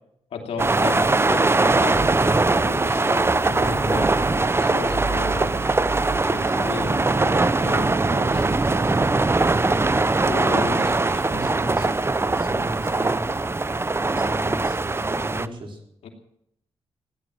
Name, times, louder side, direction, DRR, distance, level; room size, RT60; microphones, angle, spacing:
voice 1, 0.3-2.1 2.5-5.6 6.3-8.9 10.2-10.7 16.0-16.1, left 5 dB, 85° left, 3 dB, 2.8 m, -34 dB
sound 1, 0.6-15.5, right 3 dB, 25° right, 0.7 m, -21 dB
voice 2, 10.6-13.3 14.1-15.8, right 1 dB, 55° right, 2 dB, 4.2 m, -36 dB
17.0 x 11.0 x 7.7 m, 0.77 s
cardioid pair, 65°, 10 cm